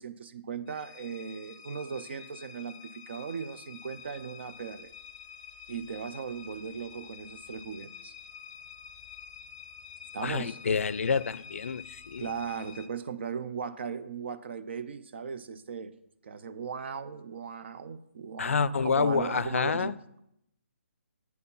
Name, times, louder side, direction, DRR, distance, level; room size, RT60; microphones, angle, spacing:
voice 1, 0.0-4.9 5.7-8.1 10.1-10.6 12.2-15.9 16.2-19.9, right 6 dB, 55° right, 0.5 m, -38 dB
sound 1, 0.7-12.9, left 7 dB, 25° left, 0.5 m, -48 dB
voice 2, 10.2-12.3 18.4-19.9, left 5 dB, 75° left, 0.4 m, -28 dB
8.4 x 4.3 x 5.4 m
hypercardioid pair, 150°, 7 cm